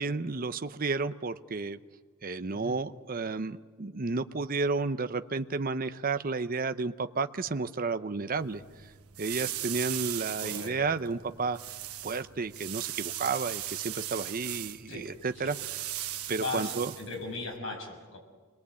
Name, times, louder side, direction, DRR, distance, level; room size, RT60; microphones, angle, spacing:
voice 1, 0.0-1.8 2.2-8.6 9.2-11.6 12.0-15.8 16.3-16.9, right 4 dB, 40° right, 10 dB, 0.7 m, -32 dB
sound 1, 8.4-17.6, right 13 dB, 85° right, 1.2 m, -39 dB
voice 2, 10.4-11.0 14.9-15.1 15.3-15.5 16.4-18.2, left 3 dB, 65° left, 2 dB, 6.5 m, -38 dB
28.5 x 21.5 x 8.4 m, 1.5 s
head